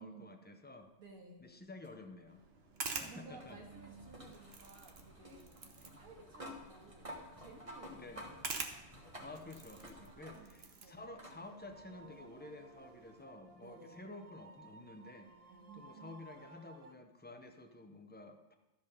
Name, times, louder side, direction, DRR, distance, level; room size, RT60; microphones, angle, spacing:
voice 1, 0.0-0.9 1.4-2.4 3.0-3.6 7.9-8.3 9.2-15.3 15.7-18.5, left 2 dB, 15° left, 5 dB, 0.3 m, -51 dB
voice 2, 1.0-1.4 2.9-5.5 5.9-8.5 10.3-11.0 13.6-14.0 15.5-16.3 16.8-16.9, right 4 dB, 90° right, 1 dB, 2.0 m, -56 dB
sound 1, 1.8-10.7 11.2-11.4 12.7-12.8 15.7-15.8, equal, 25° right, 1.4 m, -53 dB
sound 2, 2.3-13.2, right 4 dB, 50° right, 1.1 m, -49 dB
sound 3, 10.1-16.9, right 3 dB, 75° right, 0.3 m, -59 dB
13.0 x 5.2 x 5.4 m, 1.0 s
omnidirectional pair, 1.4 m